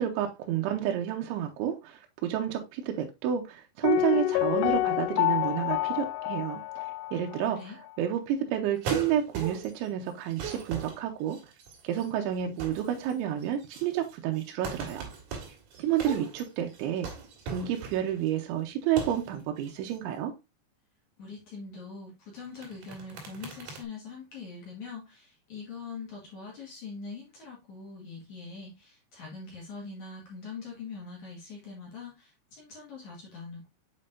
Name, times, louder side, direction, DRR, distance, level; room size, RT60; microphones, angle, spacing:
voice 1, 0.0-7.6 8.0-11.4 11.8-15.1 15.8-17.1 17.5-20.3, right 10 dB, 85° right, 3.0 m, -30 dB
Piano, 3.8-7.6 7.9-8.0, left 16 dB, 85° left, 2.9 m, -28 dB
voice 2, 7.4-7.8 21.2-33.7, left 4 dB, 50° left, 2.8 m, -43 dB
sound 1, 8.8-9.9 10.2-12.1 12.4-13.1 13.4-18.3 18.9-19.3 19.6-20.0 22.4-23.8, right 5 dB, 55° right, 3.5 m, -39 dB
7.6 x 5.4 x 2.6 m
omnidirectional pair, 5.4 m